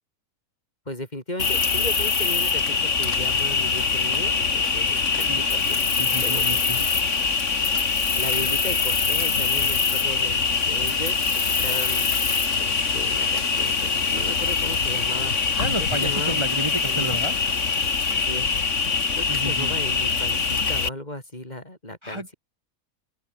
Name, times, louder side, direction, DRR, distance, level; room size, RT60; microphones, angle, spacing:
voice 1, 0.9-5.9 6.2-7.2 8.2-11.2 11.6-12.1 12.6-15.4 15.9-16.4 16.9-17.1 18.1-18.5 19.2-22.3, left 1 dB, 25° left, 5.1 m, -36 dB
Cricket, 1.4-20.9, left 5 dB, 50° left, 2.2 m, -23 dB
voice 2, 6.0-6.8 15.6-17.3 19.3-19.7 22.0-22.3, right 1 dB, 15° right, 2.6 m, -31 dB
open air
omnidirectional pair, 1.6 m